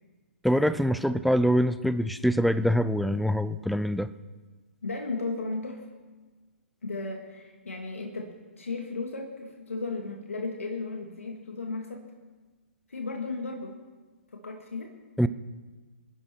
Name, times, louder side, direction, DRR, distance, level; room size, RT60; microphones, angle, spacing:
voice 1, 0.4-4.1 15.2-15.3, equal, ahead, 14 dB, 0.4 m, -24 dB
voice 2, 4.8-5.9 6.8-12.1 12.9-13.8 14.3-14.9, left 3 dB, 75° left, 2 dB, 2.2 m, -35 dB
25.5 x 11.0 x 4.6 m, 1.3 s
figure-of-eight pair, 125°, 7 cm